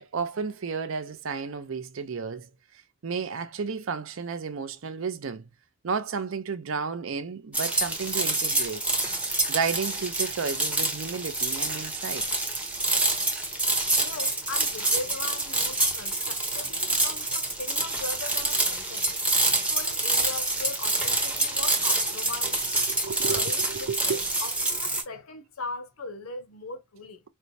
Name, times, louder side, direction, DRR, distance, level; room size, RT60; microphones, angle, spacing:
voice 1, 0.0-2.5 3.0-5.5 5.8-8.8 9.5-12.3 22.9-24.2, right 5 dB, 70° right, 0.5 m, -32 dB
sound 1, 7.5-25.0, right 2 dB, 5° right, 0.6 m, -27 dB
voice 2, 14.0-19.1 19.6-22.6 23.3-27.2, left 3 dB, 80° left, 0.8 m, -39 dB
4.3 x 2.1 x 2.6 m
head